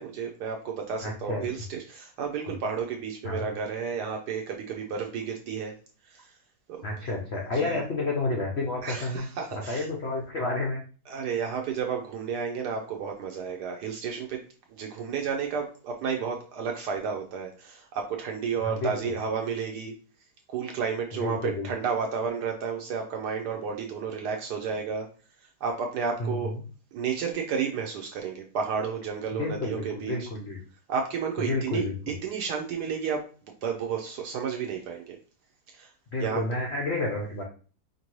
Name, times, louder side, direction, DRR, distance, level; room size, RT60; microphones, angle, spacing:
voice 1, 0.0-5.7 6.1-6.3 6.7-7.1 7.5-7.8 8.8-9.9 11.1-14.4 14.7-19.9 20.5-25.1 25.4-26.5 26.9-30.3 30.9-33.3 33.6-35.2 35.7-35.9 36.2-36.4, right 6 dB, 75° right, 2 dB, 1.0 m, -32 dB
voice 2, 1.0-1.4 2.5-2.6 3.2-3.4 6.8-9.3 9.5-10.8 18.6-19.1 21.1-21.7 26.2-26.6 29.3-30.6 31.4-32.0 36.1-37.4, left 2 dB, 75° left, 0 dB, 0.6 m, -30 dB
5.1 x 2.6 x 3.0 m, 0.39 s
omnidirectional pair, 2.1 m